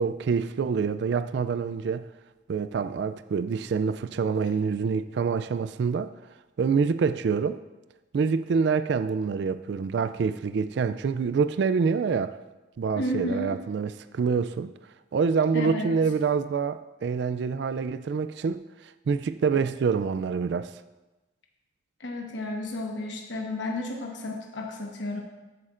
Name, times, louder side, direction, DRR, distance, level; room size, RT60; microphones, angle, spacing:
voice 1, 0.0-2.0 2.5-6.1 6.6-7.6 8.1-12.4 12.8-14.7 15.1-20.7, right 5 dB, 60° right, 12 dB, 0.3 m, -26 dB
voice 2, 13.0-13.6 15.5-15.9 22.0-25.2, left 1 dB, 70° left, 1 dB, 1.1 m, -32 dB
13.5 x 8.5 x 2.5 m, 1.1 s
head